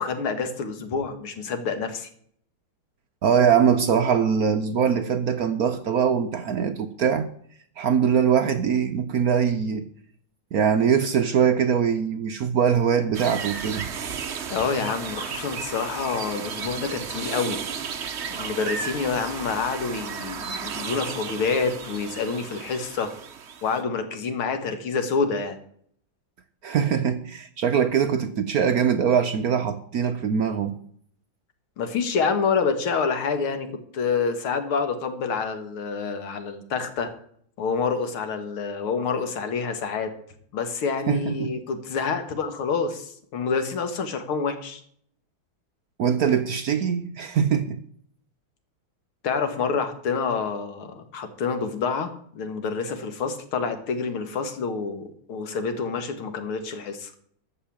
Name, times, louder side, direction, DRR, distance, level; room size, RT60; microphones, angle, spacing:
voice 1, 0.0-2.1 14.5-17.6 18.3-23.1 23.6-25.6 31.8-33.7 33.9-37.1 37.6-40.1 40.5-44.8 49.2-57.1, left 5 dB, 80° left, 2.4 m, -27 dB
voice 2, 3.2-7.3 7.8-9.9 10.5-13.9 26.6-30.7 41.1-41.5 46.0-47.8, right 7 dB, 65° right, 0.9 m, -22 dB
sound 1, 13.1-23.8, right 6 dB, 50° right, 0.9 m, -34 dB
14.0 x 5.5 x 8.7 m
omnidirectional pair, 2.3 m